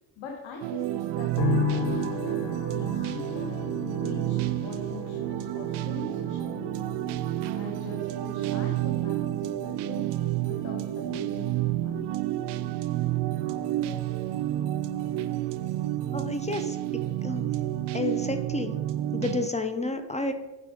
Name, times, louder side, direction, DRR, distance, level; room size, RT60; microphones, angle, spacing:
voice 1, 0.2-2.4 2.7-3.6 3.9-6.9 7.5-10.1 10.4-12.1 16.5-16.7, left 4 dB, 90° left, 2 dB, 1.2 m, -42 dB
sound 1, 0.6-19.5, right 14 dB, 70° right, 0.5 m, -30 dB
sound 2, 1.4-16.6 16.9-17.7, left 8 dB, 70° left, 0.7 m, -38 dB
voice 2, 16.1-16.8 17.2-17.5 17.9-18.8 19.1-20.3, left 2 dB, 15° left, 8 dB, 0.5 m, -30 dB
6.7 x 4.8 x 4.9 m, 1.1 s
cardioid pair, 100°, 44 cm